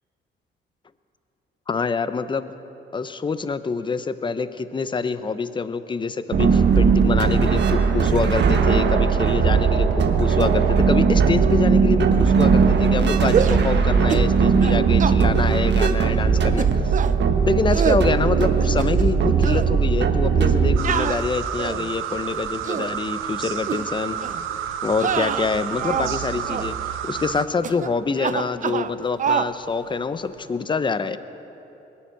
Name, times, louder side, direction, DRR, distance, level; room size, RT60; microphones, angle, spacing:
voice 1, 1.7-2.5 2.9-16.9 17.5-24.2 24.8-26.8 27.0-31.2, left 4 dB, 25° left, 13 dB, 0.6 m, -26 dB
sound 1, 6.3-20.8, right 5 dB, 60° right, 1.3 m, -18 dB
sound 2, 13.3-13.7 14.1-14.3 14.6-15.2 15.8-16.0 16.6-17.2 17.7-18.1 18.6-19.2 19.4-19.7 20.8-21.9 22.5-22.9 23.6-23.8 24.2-24.4 24.9-26.2 26.5-26.7 27.6-27.9 28.2-28.9 29.2-29.5, right 8 dB, 40° right, 0.5 m, -26 dB
sound 3, 20.8-27.5, right 9 dB, 85° right, 0.7 m, -30 dB
20.5 x 7.3 x 9.2 m, 3.0 s
cardioid pair, 90°, 20 cm